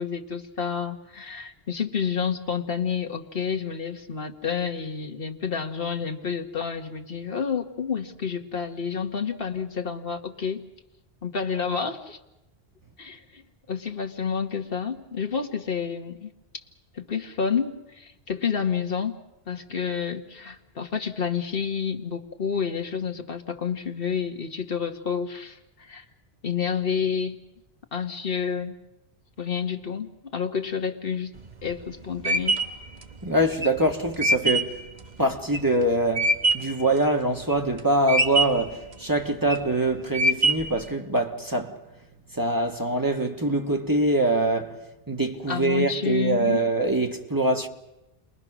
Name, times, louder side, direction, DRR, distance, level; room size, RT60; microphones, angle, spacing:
voice 1, 0.0-10.6 11.2-12.2 13.0-13.4 13.7-16.3 16.9-19.2 19.5-26.0 26.4-27.4 27.9-28.8 29.4-31.3 31.6-32.6 45.5-46.6, left 6 dB, 65° left, 1.6 m, -29 dB
sound 1, 31.4-36.8 37.2-37.8 38.1-38.7 39.2-39.7 40.1-40.8, right 2 dB, 45° right, 1.2 m, -24 dB
voice 2, 33.2-34.8 35.2-41.8 42.3-44.8 45.1-47.7, right 1 dB, 20° right, 1.5 m, -24 dB
30.0 x 21.5 x 6.1 m
omnidirectional pair, 1.0 m